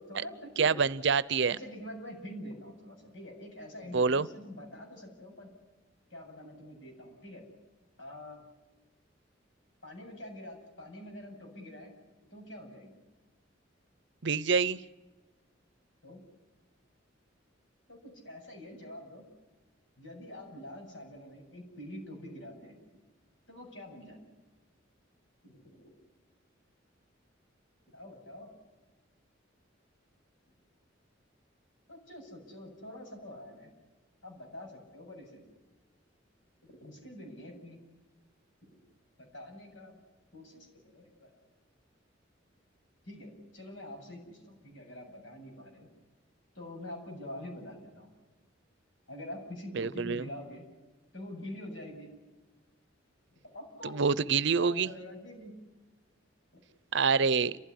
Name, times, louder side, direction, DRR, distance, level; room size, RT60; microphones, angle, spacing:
voice 1, 0.0-0.8 1.5-5.5 6.1-7.5 8.0-8.4 9.8-11.9 12.3-13.0 16.0-16.2 17.9-19.3 20.0-22.8 23.5-24.4 25.4-25.9 27.9-28.5 31.9-33.7 34.2-35.5 36.6-37.8 38.6-38.8 39.2-40.0 40.3-41.4 43.0-45.9 46.5-48.1 49.1-50.7 51.1-52.1 53.4-54.1 54.5-55.6 56.5-56.6, left 1 dB, 80° left, 2 dB, 7.8 m, -46 dB
voice 2, 0.6-1.6 3.9-4.3 14.2-14.8 49.7-50.2 53.8-54.9 56.9-57.6, right 5 dB, 65° right, 18 dB, 0.7 m, -26 dB
30.0 x 15.5 x 9.9 m, 1.2 s
head